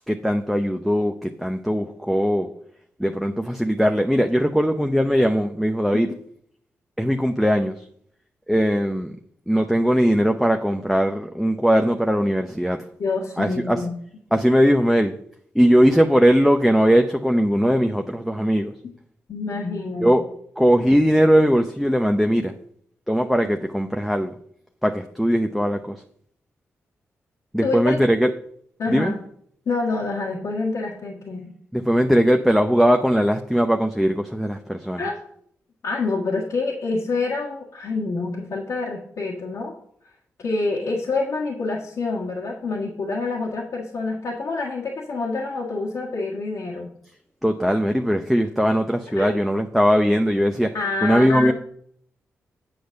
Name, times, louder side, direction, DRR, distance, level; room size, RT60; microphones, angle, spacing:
voice 1, 0.1-2.5 3.0-6.1 7.0-7.7 8.5-9.1 9.5-12.8 13.4-13.8 14.3-15.1 15.5-18.7 20.0-20.2 20.6-22.5 23.1-24.3 24.8-26.0 27.5-28.3 28.9-29.1 31.7-35.0 47.4-50.7 51.0-51.5, equal, ahead, 4 dB, 0.8 m, -19 dB
voice 2, 13.0-14.0 19.3-20.1 27.6-27.9 28.8-29.2 29.6-31.5 35.0-35.2 35.8-39.7 40.4-46.9 49.1-49.4 50.7-51.5, left 3 dB, 70° left, -4 dB, 1.6 m, -27 dB
7.9 x 5.2 x 6.5 m, 0.65 s
supercardioid pair, 50°, 6 cm